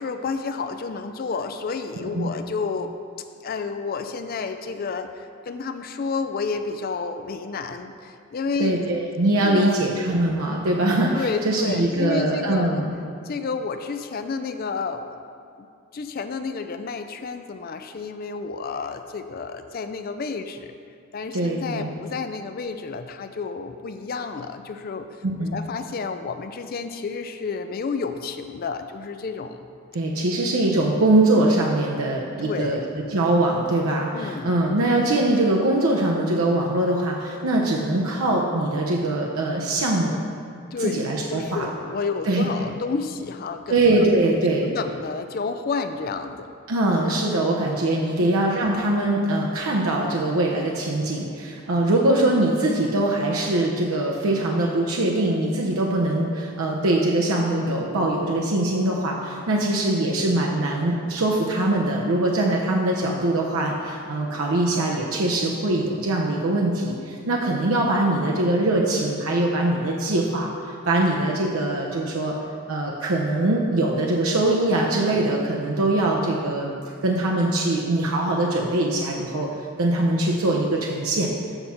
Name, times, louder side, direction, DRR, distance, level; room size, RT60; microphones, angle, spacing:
voice 1, 0.0-2.9 3.4-8.9 9.4-9.8 11.1-12.8 13.2-15.2 15.6-15.7 15.9-20.7 21.1-25.1 25.4-29.7 32.4-32.8 34.1-34.5 40.7-43.8 44.6-46.5 48.2-48.3 76.0-76.2, left 4 dB, 45° left, 8 dB, 0.4 m, -30 dB
voice 2, 2.0-2.3 8.6-13.0 21.3-21.9 25.4-25.6 29.9-32.8 33.1-40.2 40.8-41.7 42.3-42.4 43.7-44.7 46.7-72.3 72.7-76.7 77.0-79.5 79.8-81.3, right 1 dB, 75° right, -1 dB, 0.7 m, -22 dB
8.0 x 5.6 x 4.3 m, 2.4 s
head